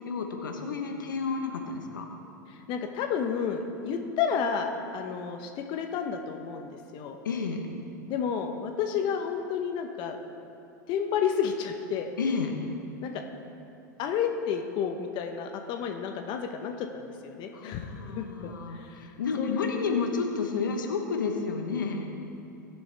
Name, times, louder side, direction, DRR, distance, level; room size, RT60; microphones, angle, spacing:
voice 1, 0.1-2.1 7.2-7.7 12.2-12.5 17.5-22.1, left 5 dB, 85° left, 3 dB, 1.2 m, -31 dB
voice 2, 2.5-7.2 8.1-10.2 10.9-12.1 13.0-13.2 14.0-19.1 19.4-20.1, left 7 dB, 50° left, 4 dB, 1.0 m, -31 dB
19.5 x 7.0 x 3.5 m, 2.6 s
hypercardioid pair, 95°, 10 cm